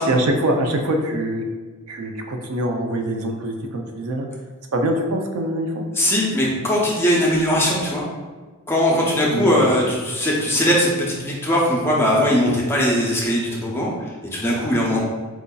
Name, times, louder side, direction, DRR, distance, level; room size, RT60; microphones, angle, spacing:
voice 1, 0.0-1.4 1.9-4.3 4.7-5.8 9.3-9.6, right 1 dB, 80° right, 3 dB, 0.5 m, -23 dB
voice 2, 6.0-8.0 8.7-15.0, equal, 10° left, -5 dB, 0.6 m, -20 dB
4.6 x 2.6 x 2.2 m, 1.4 s
head